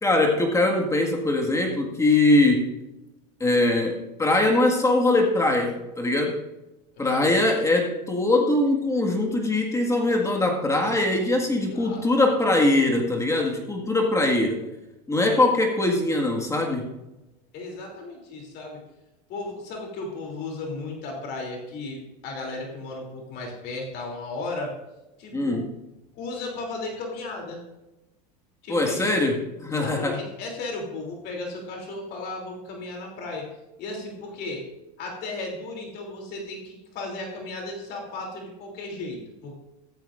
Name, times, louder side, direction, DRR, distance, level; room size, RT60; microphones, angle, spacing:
voice 1, 0.0-2.8 3.4-6.4 7.0-14.6 15.1-16.9 25.3-25.7 28.7-29.4 29.6-30.2, left 2 dB, 15° left, 2 dB, 1.9 m, -22 dB
voice 2, 6.9-7.4 11.7-12.0 17.5-18.8 19.3-24.7 25.2-25.6 26.1-27.6 28.6-29.3 29.7-33.5 33.8-34.6 35.0-39.6, left 2 dB, 55° left, 0 dB, 3.2 m, -35 dB
14.0 x 14.0 x 2.6 m, 0.98 s
supercardioid pair, 105°, 20 cm